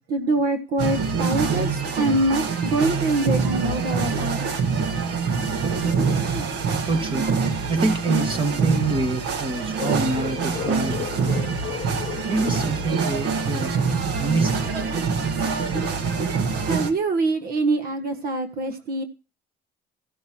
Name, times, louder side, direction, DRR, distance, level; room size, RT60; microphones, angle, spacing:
voice 1, 0.0-4.5 6.2-6.5 16.6-19.0, right 2 dB, 65° right, 1.6 m, -24 dB
sound 1, 0.8-16.9, right 5 dB, 80° right, 2.0 m, -25 dB
voice 2, 6.9-7.3 7.7-11.4 12.3-13.7 14.2-14.7, right 3 dB, 30° right, 2.2 m, -26 dB
sound 2, 9.8-13.5, left 11 dB, 50° left, 0.8 m, -35 dB
15.0 x 6.2 x 7.2 m
cardioid pair, 110°, 17 cm